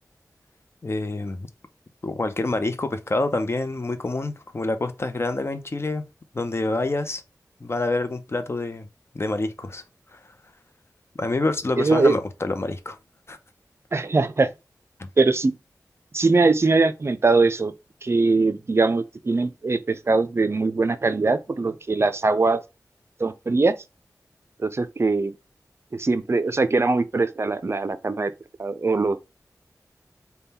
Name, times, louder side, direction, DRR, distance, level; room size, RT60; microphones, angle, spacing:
voice 1, 0.8-1.5 2.0-6.0 6.3-7.2 7.6-8.9 9.1-9.8 10.1-10.2 11.2-13.0 13.3-13.4, left 2 dB, 40° left, 0.6 m, -27 dB
voice 2, 11.8-12.2 13.9-14.5 15.2-15.5 16.1-17.7 18.0-22.6 23.2-23.7 24.6-25.3 25.9-28.3 28.6-29.2, right 3 dB, 40° right, 0.4 m, -21 dB
3.5 x 2.2 x 4.1 m
wide cardioid pair, 65°, 7 cm